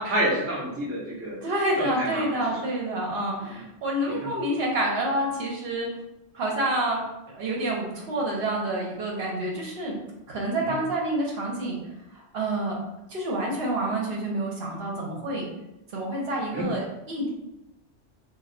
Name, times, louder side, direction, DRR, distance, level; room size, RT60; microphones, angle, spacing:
voice 1, 0.0-1.4 1.8-2.6 3.4-3.6 4.2-4.3 10.6-10.7 16.5-16.7, right 1 dB, 20° right, -5 dB, 0.4 m, -29 dB
voice 2, 1.4-5.9 6.3-7.0 7.3-10.0 10.3-11.8 12.3-12.8 13.1-15.5 15.9-17.3, right 1 dB, 65° right, -2 dB, 0.8 m, -28 dB
2.2 x 2.1 x 3.6 m, 0.92 s
omnidirectional pair, 1.2 m